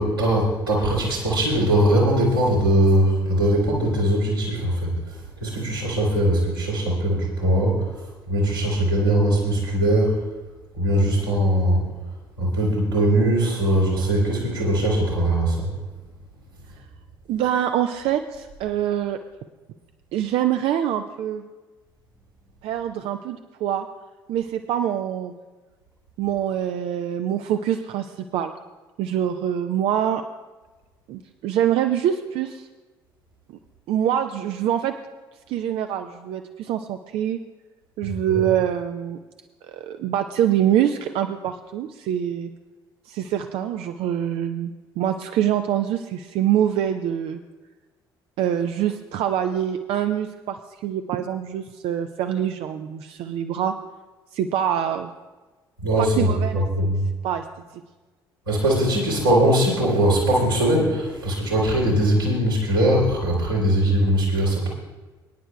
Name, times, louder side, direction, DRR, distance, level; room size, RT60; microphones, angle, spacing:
voice 1, 0.0-7.9 8.3-10.2 10.7-11.9 12.4-15.7 38.0-38.4 55.8-56.3 56.8-57.0 58.5-64.7, right 1 dB, 80° right, -6 dB, 2.9 m, -21 dB
voice 2, 17.3-19.2 20.1-21.4 22.6-23.9 24.3-25.3 26.2-28.5 29.0-30.3 31.1-32.7 33.5-33.6 33.9-34.9 35.5-37.4 38.0-39.2 39.6-42.5 43.1-47.4 48.4-53.7 54.3-55.1 56.0-56.9 57.2-57.4, right 10 dB, 50° right, 7 dB, 0.5 m, -25 dB
23.5 x 10.0 x 2.2 m, 1.3 s
figure-of-eight pair, 50°, 12 cm